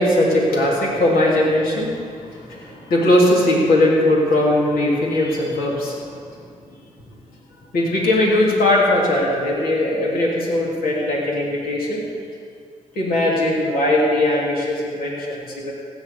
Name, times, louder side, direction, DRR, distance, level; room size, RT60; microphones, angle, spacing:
voice 1, 0.0-6.2 7.7-12.0 12.9-15.7, left 1 dB, 75° left, -4 dB, 3.2 m, -19 dB
15.5 x 9.7 x 7.0 m, 2.2 s
supercardioid pair, 45°, 15 cm